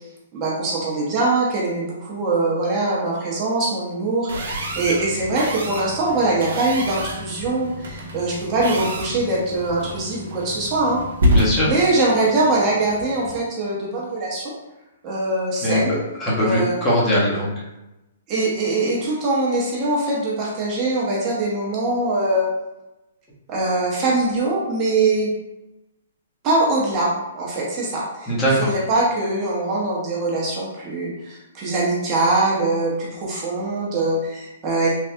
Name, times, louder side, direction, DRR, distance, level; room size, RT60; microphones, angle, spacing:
voice 1, 0.3-11.0 11.6-14.5 15.0-16.0 16.4-16.7 18.3-22.5 23.5-25.3 26.4-34.9, right 2 dB, 25° right, -5 dB, 0.7 m, -22 dB
sound 1, 4.3-13.4, equal, 75° right, 0.7 m, -28 dB
voice 2, 11.3-11.7 15.6-15.8 16.2-17.5 28.3-28.7, equal, 15° left, -7 dB, 0.9 m, -20 dB
3.3 x 2.3 x 2.7 m, 0.96 s
hypercardioid pair, 150°, 0 cm